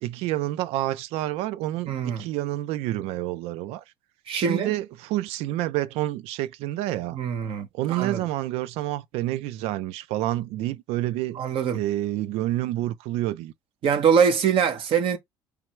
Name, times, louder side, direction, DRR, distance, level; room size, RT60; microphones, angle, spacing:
voice 1, 0.0-3.8 4.3-7.2 7.7-11.4 11.7-13.5, right 15 dB, 80° right, 0.5 m, -28 dB
voice 2, 1.9-2.3 4.3-4.7 7.1-8.2 11.3-11.8 13.8-15.2, right 7 dB, 60° right, 1.3 m, -23 dB
3.4 x 3.3 x 3.1 m
supercardioid pair, 90°, 10 cm